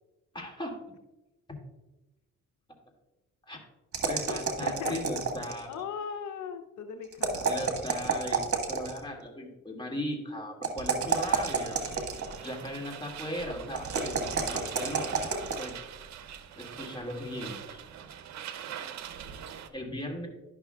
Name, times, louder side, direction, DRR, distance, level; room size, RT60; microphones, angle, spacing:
voice 1, 0.3-0.7 3.5-3.6 4.1-5.9 7.3-8.4 8.7-11.8 12.4-15.1 15.6-15.8 16.6-17.8 19.7-20.3, left 1 dB, 15° left, 0 dB, 2.0 m, -37 dB
sound 1, 3.9-5.7 7.1-9.0 10.6-12.5 13.8-15.7, right 5 dB, 50° right, 1.5 m, -30 dB
voice 2, 4.2-4.9 5.7-7.5, left 7 dB, 70° left, 6 dB, 0.7 m, -39 dB
sound 2, 11.1-19.7, right 8 dB, 65° right, 0.7 m, -43 dB
11.0 x 6.1 x 2.3 m, 1.0 s
cardioid pair, 90°, 30 cm